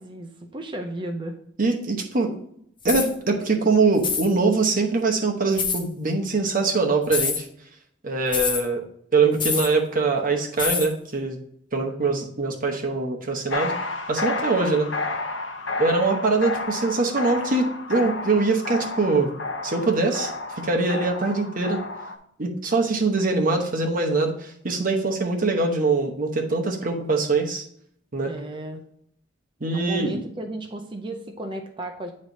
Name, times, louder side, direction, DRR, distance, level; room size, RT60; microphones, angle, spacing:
voice 1, 0.0-1.3 28.3-28.8 29.7-32.1, right 1 dB, 25° right, 4 dB, 0.5 m, -33 dB
voice 2, 1.6-2.4 2.8-7.4 8.0-8.8 9.1-11.4 11.7-13.7 14.1-14.9 15.8-19.3 19.6-20.3 20.6-21.8 22.4-27.6 28.1-28.3 29.6-30.2, right 3 dB, 45° right, 2 dB, 1.0 m, -23 dB
sound 1, 2.8-3.1 4.0-4.3 5.6-5.8 7.1-7.4 8.3-8.6 9.4-9.7 10.6-10.9, left 5 dB, 25° left, 0.8 m, -25 dB
sound 2, 13.5-22.2, left 3 dB, 70° left, 0.8 m, -31 dB
8.9 x 3.2 x 4.0 m, 0.69 s
head